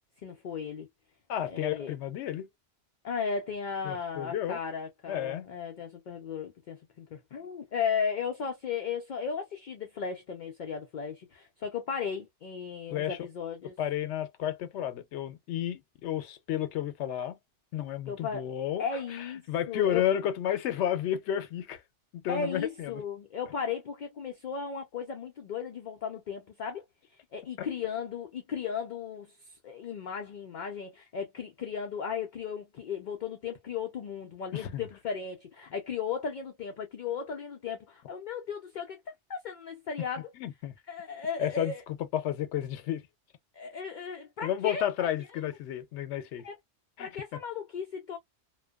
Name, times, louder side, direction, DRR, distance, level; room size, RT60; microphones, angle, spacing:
voice 1, 0.2-0.9 1.4-2.0 3.0-13.8 18.1-18.5 18.8-20.0 22.3-26.8 27.3-39.0 39.3-40.3 40.9-41.8 43.5-45.1 45.3-45.4 46.4-46.6 47.0-48.2, left 6 dB, 60° left, 0.5 m, -36 dB
voice 2, 1.3-2.5 3.8-4.6 5.1-5.5 12.9-13.2 13.8-17.4 17.7-18.8 19.1-21.8 22.1-22.9 27.6-27.7 34.5-34.9 40.4-40.7 41.4-43.1 44.4-46.5 47.0-47.2, left 11 dB, 80° left, 0.9 m, -32 dB
2.6 x 2.2 x 2.2 m
omnidirectional pair, 1.2 m